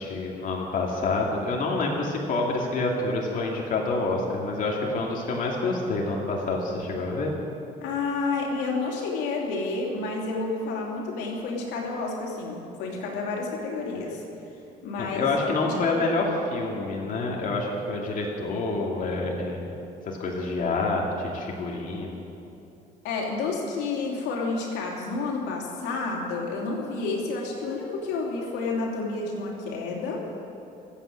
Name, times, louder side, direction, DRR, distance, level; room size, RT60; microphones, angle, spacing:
voice 1, 0.0-7.3 15.0-19.7 20.1-22.2, left 3 dB, 55° left, -2 dB, 2.5 m, -27 dB
voice 2, 7.8-14.2 14.8-16.0 23.0-30.3, left 3 dB, 90° left, -1 dB, 3.1 m, -30 dB
24.5 x 8.7 x 6.5 m, 2.8 s
cardioid pair, 110°, 17 cm